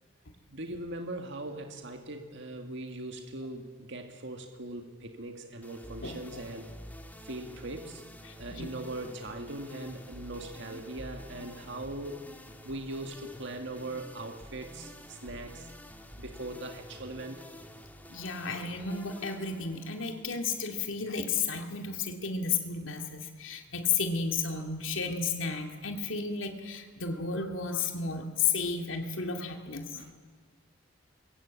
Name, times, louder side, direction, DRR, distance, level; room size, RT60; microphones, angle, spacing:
voice 1, 0.5-6.7 7.2-8.0 8.4-12.3 12.6-15.7 16.2-17.4 29.9-30.1, right 2 dB, 65° right, 5 dB, 2.0 m, -40 dB
sound 1, 5.6-21.0, equal, 10° left, 1.8 m, -49 dB
voice 2, 8.3-8.7 18.1-29.9, left 5 dB, 80° left, 4 dB, 2.4 m, -33 dB
26.5 x 22.5 x 8.4 m, 1.5 s
head